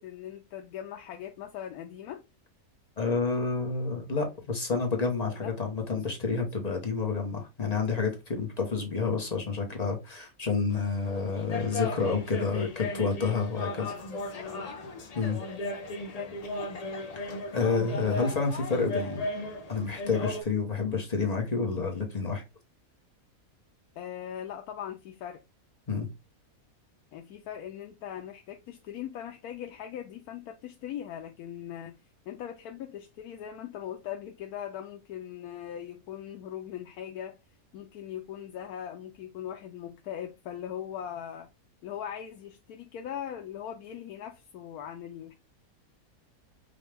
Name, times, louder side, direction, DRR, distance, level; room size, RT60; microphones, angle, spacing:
voice 1, 0.0-2.2 5.4-5.5 13.9-14.1 14.3-14.8 16.0-16.4 24.0-25.4 27.1-32.0 32.3-37.4 37.7-41.5 41.8-45.3, left 10 dB, 90° left, 1.1 m, -40 dB
voice 2, 3.0-14.1 15.1-15.4 17.2-19.2 19.7-22.4 25.9-26.1, left 4 dB, 35° left, 0.8 m, -29 dB
sound 1, 10.7-20.4, left 2 dB, 55° left, 0.4 m, -36 dB
5.2 x 2.2 x 3.3 m
omnidirectional pair, 1.5 m